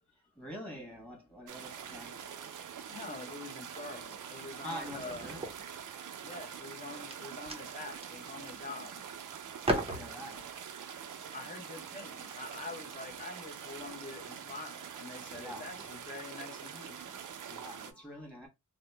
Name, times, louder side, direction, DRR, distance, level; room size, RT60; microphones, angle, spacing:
voice 1, 0.3-2.2 4.6-5.5 9.6-10.5 15.4-15.7 16.9-18.5, equal, 5° left, 1.2 m, -45 dB
sound 1, 1.5-17.9, right 8 dB, 80° right, 0.5 m, -45 dB
voice 2, 2.2-5.3 6.2-9.0 11.3-17.2, left 3 dB, 25° left, 0.7 m, -46 dB
sound 2, 2.2-2.7 3.2-3.5 3.9-6.3 6.8-9.2 9.5-10.6 11.5-11.8 12.9-13.1 13.9-14.2 14.8-14.9 15.2-16.2, right 1 dB, 20° right, 0.6 m, -40 dB
2.7 x 2.1 x 3.2 m
wide cardioid pair, 140°, 31 cm